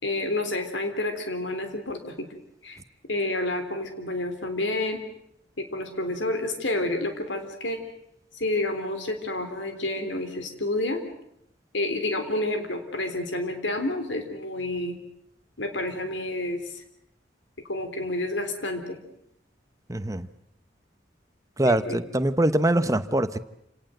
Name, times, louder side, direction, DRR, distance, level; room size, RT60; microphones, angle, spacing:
voice 1, 0.0-2.3 2.6-2.8 3.1-5.0 5.6-7.8 8.3-11.0 11.7-15.0 15.6-16.8 17.7-19.0 21.6-22.0, left 2 dB, 80° left, 3.7 m, -29 dB
voice 2, 19.9-20.3 21.6-23.4, right 1 dB, 20° right, 1.0 m, -23 dB
28.0 x 18.5 x 7.9 m
head